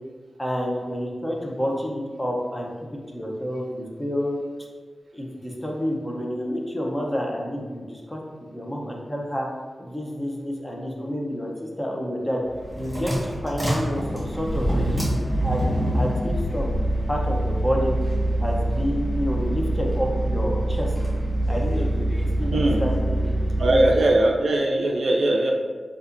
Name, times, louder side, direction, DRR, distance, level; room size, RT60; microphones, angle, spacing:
voice 1, 0.4-2.7 3.1-4.4 5.1-8.2 8.5-9.5 9.8-12.4 12.8-15.1 15.4-15.6 15.9-16.8 17.1-18.0 18.4-20.9 21.5-22.1 22.4-23.4 23.7-24.1, equal, 15° left, -1 dB, 0.7 m, -29 dB
sound 1, 12.5-24.0, right 1 dB, 20° right, 1.4 m, -25 dB
voice 2, 22.5-22.8 23.6-25.5, right 1 dB, 80° right, 1 dB, 0.4 m, -20 dB
4.1 x 2.4 x 2.5 m, 1.5 s
cardioid pair, 55°, 0 cm